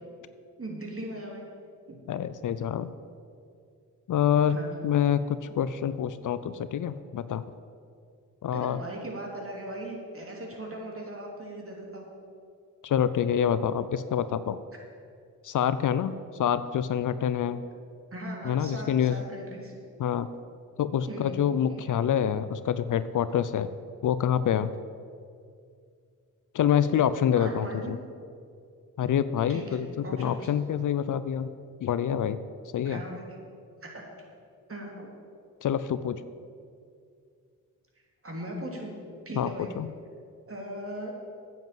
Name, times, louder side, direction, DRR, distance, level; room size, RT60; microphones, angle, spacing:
voice 1, 0.6-1.4 1.9-2.0 4.5-4.7 8.5-12.1 18.1-19.8 21.1-21.4 21.7-21.8 27.4-27.9 29.5-30.5 32.8-33.2 33.8-34.0 34.7-35.1 38.2-38.9 39.2-39.7 40.5-41.1, right 1 dB, 40° right, 0 dB, 3.1 m, -38 dB
voice 2, 2.1-2.9 4.1-7.4 8.4-8.8 12.8-14.6 15.4-16.1 16.4-17.6 18.4-19.2 20.0-20.3 20.8-23.7 24.0-24.7 26.5-28.0 29.0-29.9 30.2-31.5 31.8-32.4 32.7-33.0 35.6-36.2 39.4-39.5 39.8-39.9, left 9 dB, 60° left, 14 dB, 0.6 m, -26 dB
9.2 x 7.5 x 7.5 m, 2.3 s
supercardioid pair, 50°, 36 cm